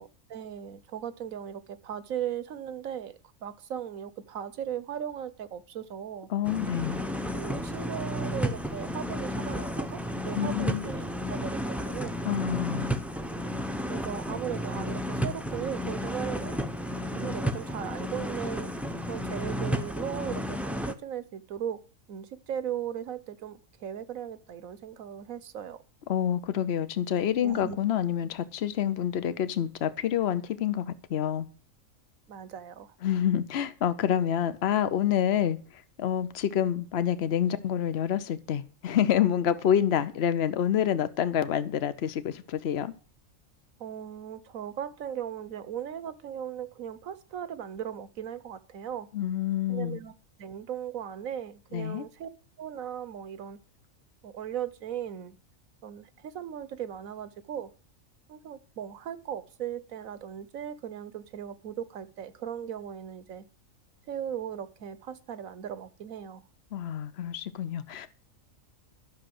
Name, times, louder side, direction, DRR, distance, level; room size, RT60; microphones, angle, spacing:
voice 1, 0.0-6.3 7.0-12.2 13.9-16.6 17.1-18.7 19.1-21.8 22.1-25.8 27.4-27.8 32.3-32.9 39.8-40.0 43.8-49.1 49.7-50.1 50.4-52.3 52.6-53.6 54.2-55.4 55.8-57.7 58.3-63.5 64.1-66.4, right 9 dB, 85° right, 1.4 m, -37 dB
voice 2, 6.3-7.0 10.3-10.9 12.2-12.9 26.1-31.5 33.0-42.9 49.1-50.0 51.7-52.0 66.7-68.1, left 9 dB, 55° left, 1.0 m, -27 dB
sound 1, 6.4-20.9, equal, ahead, 0.6 m, -32 dB
12.0 x 6.5 x 7.7 m
omnidirectional pair, 1.4 m